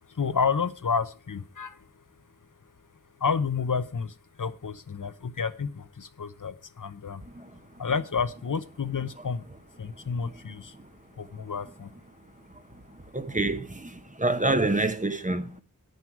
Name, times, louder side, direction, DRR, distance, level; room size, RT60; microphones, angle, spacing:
voice 1, 0.2-1.7 3.2-4.1 4.4-7.2 7.8-9.4 9.8-10.6 11.2-11.9, left 5 dB, 65° left, 0.8 m, -30 dB
voice 2, 13.1-15.6, right 2 dB, 25° right, 0.9 m, -27 dB
9.6 x 9.1 x 4.7 m
wide cardioid pair, 55°, 33 cm